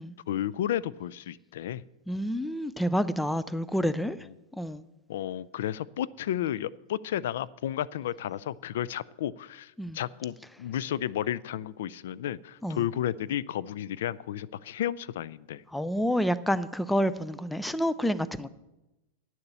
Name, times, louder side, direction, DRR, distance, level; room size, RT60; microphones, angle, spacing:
voice 1, 0.3-1.8 4.2-4.3 5.1-15.6, left 11 dB, 75° left, 21 dB, 0.3 m, -32 dB
voice 2, 2.1-4.2 4.5-4.8 9.8-10.0 12.6-12.8 15.7-18.5, equal, 5° left, 15 dB, 0.4 m, -28 dB
9.9 x 6.9 x 8.1 m, 0.99 s
supercardioid pair, 150°, 0 cm